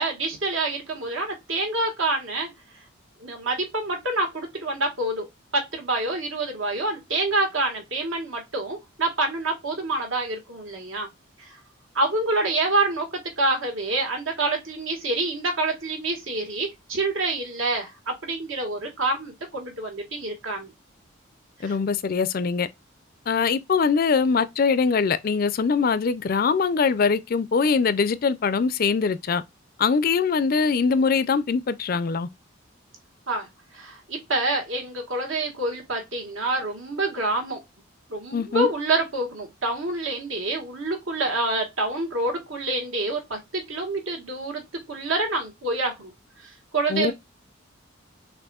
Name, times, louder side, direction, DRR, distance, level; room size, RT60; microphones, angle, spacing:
voice 1, 0.0-2.5 3.2-5.3 5.5-11.1 11.4-11.6 11.9-20.7 21.6-21.7 33.3-33.5 33.7-37.6 38.1-46.1 46.4-47.1, right 2 dB, 75° right, 1.6 m, -27 dB
voice 2, 21.6-22.7 23.3-29.4 29.8-32.3 38.3-38.7 46.9-47.1, left 5 dB, 45° left, 0.4 m, -22 dB
6.1 x 2.6 x 2.3 m
head